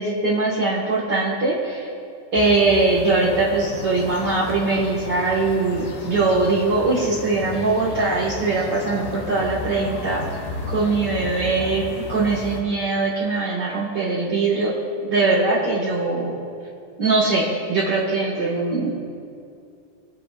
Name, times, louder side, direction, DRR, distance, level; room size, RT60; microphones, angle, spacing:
voice 1, 0.0-1.9 2.3-10.2 10.7-14.7 15.1-16.4 17.0-19.0, right 3 dB, 45° right, -7 dB, 1.4 m, -21 dB
sound 1, 2.3-12.6, left 2 dB, 60° left, 2.8 m, -34 dB
27.5 x 10.5 x 2.5 m, 2.4 s
omnidirectional pair, 4.3 m